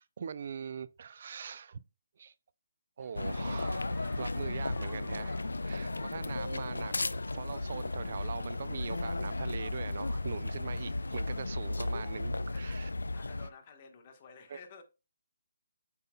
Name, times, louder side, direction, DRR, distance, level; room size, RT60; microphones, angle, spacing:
voice 1, 0.0-1.8 2.2-2.3 3.0-12.9 14.5-14.6, right 6 dB, 55° right, 0.4 m, -42 dB
sound 1, 3.0-12.2, right 3 dB, 5° right, 0.7 m, -61 dB
sound 2, 3.2-13.5, left 2 dB, 90° left, 0.4 m, -35 dB
voice 2, 13.1-14.8, left 5 dB, 35° left, 1.4 m, -53 dB
7.8 x 5.7 x 2.3 m
figure-of-eight pair, 150°, 0 cm